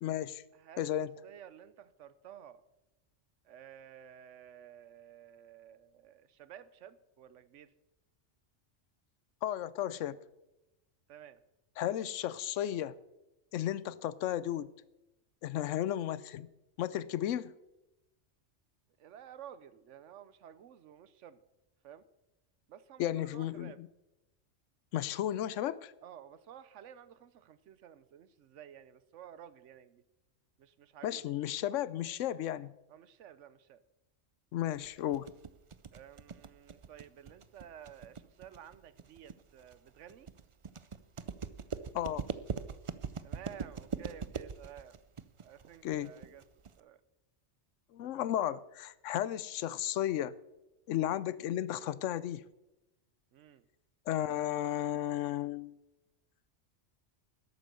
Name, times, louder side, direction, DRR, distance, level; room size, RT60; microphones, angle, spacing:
voice 1, 0.0-0.4 0.8-1.1 9.4-10.2 11.8-13.0 13.5-14.7 15.4-16.5 16.8-17.5 23.0-23.9 24.9-25.9 31.0-32.7 34.5-35.3 41.9-42.3 45.8-46.1 47.9-50.4 50.9-52.4 54.1-55.8, left 12 dB, 90° left, 0.9 m, -34 dB
voice 2, 0.5-2.6 3.4-7.7 11.1-11.4 19.0-21.4 21.8-22.0 22.7-23.8 26.0-30.0 30.6-31.2 32.9-33.8 35.9-40.3 43.2-45.0 45.4-46.4 46.8-47.0 53.3-53.6, right 9 dB, 80° right, 1.1 m, -53 dB
sound 1, 34.8-46.8, right 6 dB, 45° right, 0.4 m, -42 dB
12.5 x 8.2 x 6.8 m
omnidirectional pair, 1.2 m